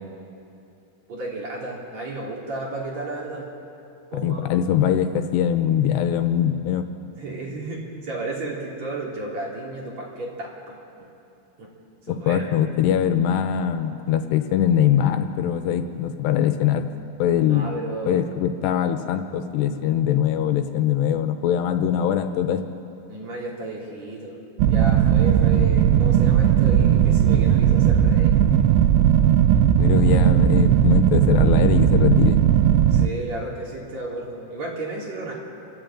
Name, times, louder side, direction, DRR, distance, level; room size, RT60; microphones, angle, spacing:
voice 1, 1.1-3.5 4.1-4.5 7.2-10.7 11.6-11.7 12.1-12.4 17.5-18.1 23.1-24.4 24.6-28.3 32.9-35.3, right 2 dB, 40° right, -4 dB, 4.3 m, -33 dB
voice 2, 4.1-6.9 12.1-16.9 17.2-17.7 18.1-22.6 29.8-32.4, left 9 dB, 85° left, 8 dB, 2.9 m, -22 dB
sound 1, 24.6-33.1, right 10 dB, 90° right, 2.9 m, -17 dB
29.5 x 13.0 x 8.8 m, 2.7 s
omnidirectional pair, 5.0 m